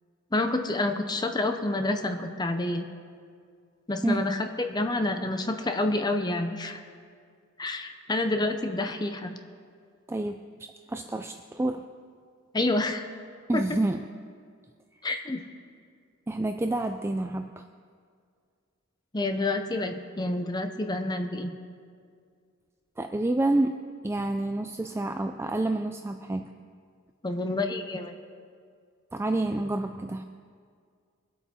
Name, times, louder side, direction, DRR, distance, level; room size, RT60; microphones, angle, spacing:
voice 1, 0.3-2.9 3.9-6.8 7.6-9.4 12.5-13.1 13.5-13.8 15.0-15.4 19.1-21.6 27.2-28.2, left 2 dB, 20° left, 6 dB, 0.7 m, -28 dB
voice 2, 10.1-11.9 13.5-14.1 16.3-17.6 23.0-23.8 24.0-26.5 29.1-30.2, right 2 dB, 10° right, 7 dB, 0.3 m, -28 dB
23.0 x 8.2 x 4.3 m, 2.1 s
head